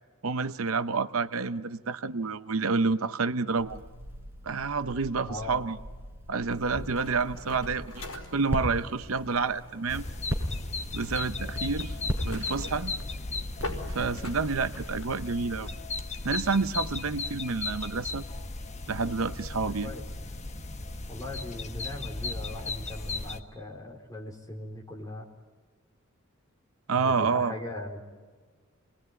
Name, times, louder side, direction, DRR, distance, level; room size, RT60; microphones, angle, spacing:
voice 1, 0.2-3.8 4.4-5.8 6.3-10.1 10.9-12.0 12.2-12.9 13.9-15.7 16.2-18.2 18.9-19.9 26.9-27.5, right 4 dB, 70° right, 11 dB, 0.8 m, -29 dB
Crackle, 3.5-14.4, equal, 10° right, 4.7 m, -39 dB
voice 2, 5.2-5.6 19.6-20.0 21.1-25.2 26.9-28.0, left 1 dB, 15° left, 0 dB, 4.0 m, -39 dB
sound 1, 6.5-15.7, left 2 dB, 80° left, 5.1 m, -45 dB
sound 2, 9.9-23.4, left 3 dB, 30° left, 1.2 m, -36 dB
28.5 x 21.0 x 9.5 m, 1.5 s
head